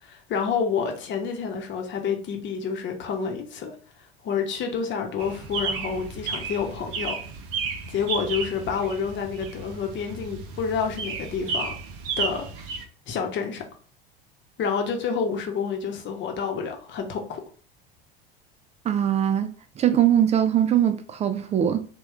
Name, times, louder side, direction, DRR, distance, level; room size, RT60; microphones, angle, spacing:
voice 1, 0.0-3.7 4.2-7.2 7.9-11.8 12.2-12.5 13.1-13.7 14.6-17.4, left 6 dB, 40° left, 0.9 m, -28 dB
sound 1, 5.2-12.8, right 5 dB, 65° right, 0.7 m, -33 dB
voice 2, 18.8-21.8, right 10 dB, 25° right, 0.4 m, -22 dB
3.5 x 2.4 x 3.2 m
hypercardioid pair, 75°, 29 cm